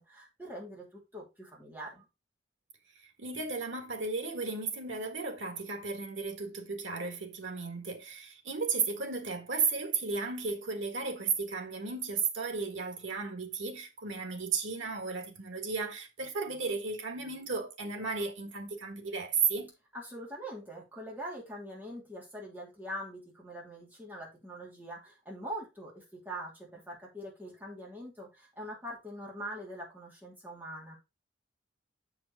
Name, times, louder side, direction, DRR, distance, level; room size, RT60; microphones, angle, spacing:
voice 1, 0.1-2.1 19.9-31.0, equal, 10° right, 2.9 m, -43 dB
voice 2, 3.2-19.7, right 5 dB, 90° right, 1.6 m, -34 dB
7.2 x 5.0 x 4.1 m
head